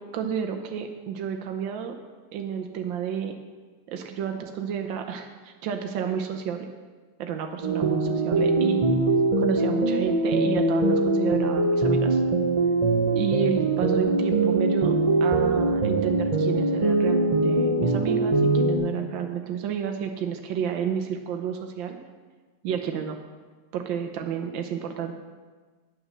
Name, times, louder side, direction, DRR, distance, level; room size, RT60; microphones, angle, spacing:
voice 1, 0.1-1.9 2.3-3.3 3.9-6.7 7.2-9.0 9.4-12.2 13.1-22.0 22.6-23.2 23.7-25.2, right 8 dB, 85° right, 5 dB, 1.5 m, -31 dB
sound 1, 7.6-18.8, right 2 dB, 25° right, 0.8 m, -22 dB
9.2 x 8.8 x 6.3 m, 1.4 s
omnidirectional pair, 2.0 m